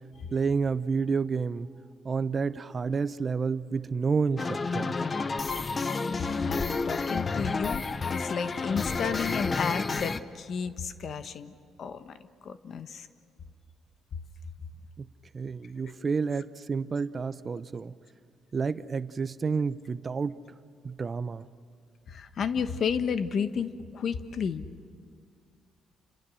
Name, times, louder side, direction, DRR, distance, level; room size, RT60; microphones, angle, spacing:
voice 1, 0.3-1.7 2.0-5.0 15.0-18.0 18.5-20.4 20.8-21.5, right 5 dB, 40° right, 14 dB, 0.7 m, -30 dB
sound 1, 4.4-10.2, left 4 dB, 35° left, 0.9 m, -30 dB
voice 2, 6.4-11.5 11.8-12.2 12.4-13.1 15.8-15.9 22.1-24.6, left 6 dB, 60° left, 10 dB, 1.2 m, -32 dB
29.5 x 27.0 x 6.4 m, 2.1 s
cardioid pair, 90°, 0 cm